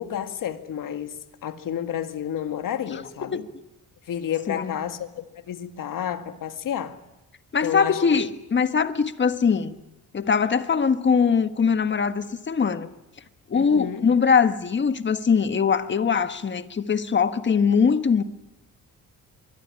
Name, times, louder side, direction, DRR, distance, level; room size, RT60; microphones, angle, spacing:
voice 1, 0.0-3.5 4.1-7.0 7.6-8.0 13.5-14.1, left 10 dB, 65° left, 2.1 m, -31 dB
voice 2, 7.5-9.8 10.1-12.9 13.5-18.2, left 6 dB, 35° left, 1.5 m, -22 dB
23.5 x 23.0 x 9.9 m
cardioid pair, 130°, 35 cm